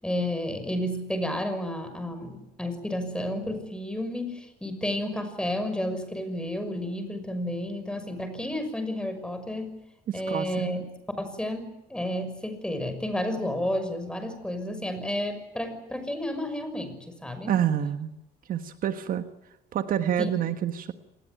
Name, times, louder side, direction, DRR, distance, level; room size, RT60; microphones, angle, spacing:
voice 1, 0.0-9.8 10.1-10.9 11.2-17.5 20.2-20.3, left 1 dB, 5° left, 9 dB, 6.2 m, -31 dB
voice 2, 10.1-10.5 17.5-18.1 18.5-19.3 19.7-20.9, right 9 dB, 55° right, 9 dB, 1.5 m, -27 dB
26.5 x 20.0 x 9.3 m, 0.91 s
cardioid pair, 110°, 17 cm